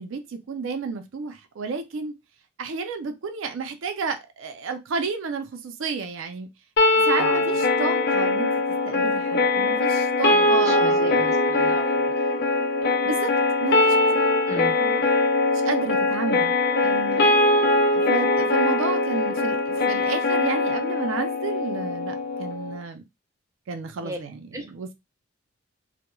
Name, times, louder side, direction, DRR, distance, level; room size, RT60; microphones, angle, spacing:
voice 1, 0.0-2.1 2.6-6.5 6.9-8.5 8.8-11.3 13.0-13.3 13.6-14.2 14.6-15.1 15.4-17.3 17.9-23.0 23.7-24.9, right 5 dB, 70° right, 0.4 m, -32 dB
sound 1, 6.8-22.8, left 2 dB, 50° left, 0.4 m, -22 dB
voice 2, 7.1-7.6 10.3-12.1 14.5-14.7 24.0-24.2 24.5-24.6, right 1 dB, 15° right, 0.4 m, -35 dB
2.2 x 2.1 x 3.0 m
head